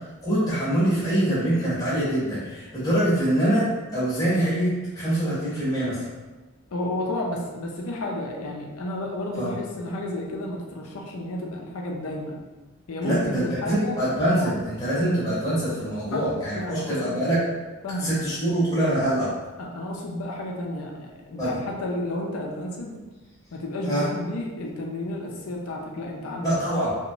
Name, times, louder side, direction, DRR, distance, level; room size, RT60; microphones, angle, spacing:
voice 1, 0.2-4.7 4.9-6.0 9.4-9.5 13.0-17.4 18.0-19.3 21.4-21.6 23.9-24.1 26.4-26.9, right 1 dB, 15° left, -11 dB, 0.8 m, -24 dB
voice 2, 6.7-12.4 12.9-14.0 14.4-14.5 16.1-16.3 16.5-17.2 17.8-18.1 19.6-22.9 23.5-26.6, left 1 dB, 85° left, 0 dB, 0.5 m, -31 dB
2.9 x 2.2 x 2.6 m, 1.2 s
head